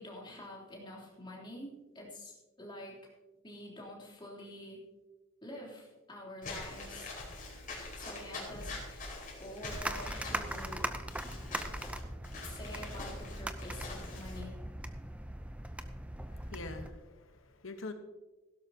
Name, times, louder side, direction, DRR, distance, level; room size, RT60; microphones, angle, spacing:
voice 1, 0.0-3.0 3.4-4.8 5.4-7.1 7.9-10.9 12.4-14.5, left 1 dB, 20° left, -4 dB, 3.3 m, -47 dB
Walk footsteps / Squeak, 6.4-14.4, left 2 dB, 40° left, 4.8 m, -44 dB
sound 1, 9.7-16.9, right 1 dB, 5° right, 0.6 m, -40 dB
voice 2, 16.3-17.9, left 3 dB, 70° left, 7 dB, 1.2 m, -45 dB
16.0 x 12.5 x 2.9 m, 1.1 s
head